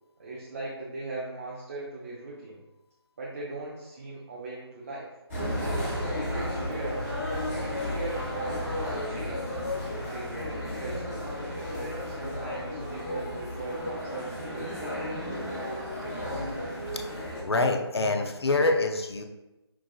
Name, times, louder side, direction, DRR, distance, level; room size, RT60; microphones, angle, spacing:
voice 1, 0.2-2.6 3.2-5.2 5.6-7.1 7.8-9.6 10.1-11.3 11.7-15.0, right 2 dB, 35° right, -4 dB, 0.5 m, -39 dB
sound 1, 5.3-17.4, left 1 dB, 25° left, 1.4 m, -33 dB
voice 2, 17.1-19.3, left 2 dB, 70° left, 3 dB, 0.5 m, -26 dB
5.9 x 2.3 x 2.3 m, 1.0 s
figure-of-eight pair, 150°, 14 cm